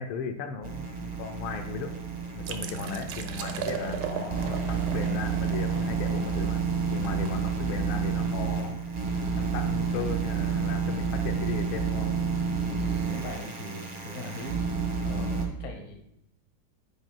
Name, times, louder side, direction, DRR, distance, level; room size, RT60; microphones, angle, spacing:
voice 1, 0.0-2.0 2.3-6.6 6.9-8.8 9.4-12.1, left 6 dB, 80° left, 5 dB, 1.3 m, -36 dB
sound 1, 0.6-15.5, right 6 dB, 45° right, 0.5 m, -30 dB
sound 2, 2.4-8.0, right 8 dB, 80° right, 0.9 m, -39 dB
voice 2, 12.6-14.6 15.0-16.0, left 1 dB, 50° left, 2 dB, 1.0 m, -40 dB
8.9 x 5.0 x 2.2 m, 0.77 s
omnidirectional pair, 2.3 m